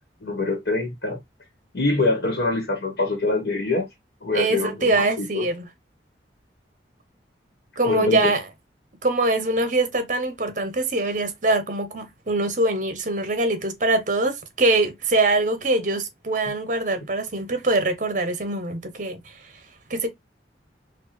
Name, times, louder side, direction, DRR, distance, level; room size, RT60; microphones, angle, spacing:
voice 1, 0.2-1.2 1.7-3.9 4.2-5.5 7.8-8.3, left 2 dB, 70° left, 1.3 m, -24 dB
voice 2, 4.3-5.6 7.8-8.4 9.0-19.2 19.9-20.1, right 2 dB, 45° right, 0.9 m, -23 dB
4.2 x 2.4 x 3.1 m
head